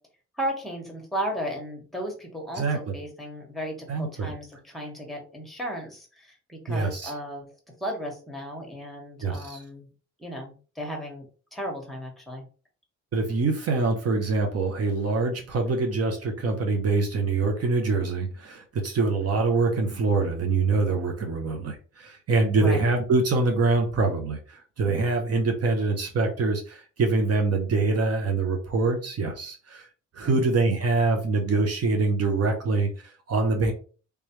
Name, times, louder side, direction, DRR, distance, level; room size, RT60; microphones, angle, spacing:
voice 1, 0.4-7.5 7.8-9.9 10.2-11.3 11.5-12.4 22.5-22.8 30.2-30.5, equal, ahead, 0 dB, 1.6 m, -35 dB
voice 2, 2.5-2.9 3.9-4.3 6.7-7.1 9.2-9.6 13.1-29.9 30.1-33.7, right 3 dB, 55° right, 3 dB, 0.9 m, -25 dB
3.4 x 3.2 x 3.1 m, 0.37 s
cardioid pair, 90°, 30 cm